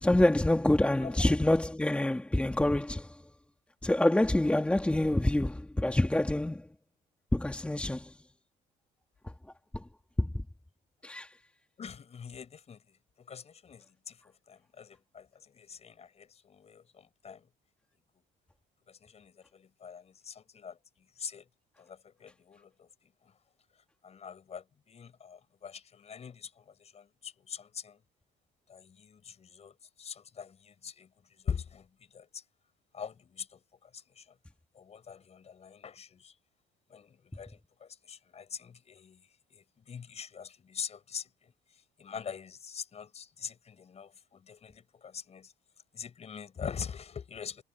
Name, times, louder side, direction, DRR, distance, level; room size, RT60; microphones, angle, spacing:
voice 1, 0.0-3.1 3.8-6.6 7.3-8.1 9.7-9.8 10.2-10.3 11.0-11.3, left 1 dB, 5° left, 2.3 m, -26 dB
voice 2, 11.8-12.8 13.2-14.2 14.5-17.5 18.9-20.8 21.2-21.5 21.8-22.9 24.0-28.0 28.7-31.1 31.4-31.9 32.1-32.4 32.9-34.2 34.7-36.3 36.9-39.2 39.5-41.3 42.0-45.5 45.9-47.6, left 7 dB, 40° left, 6.2 m, -44 dB
cardioid pair, 110°, 17 cm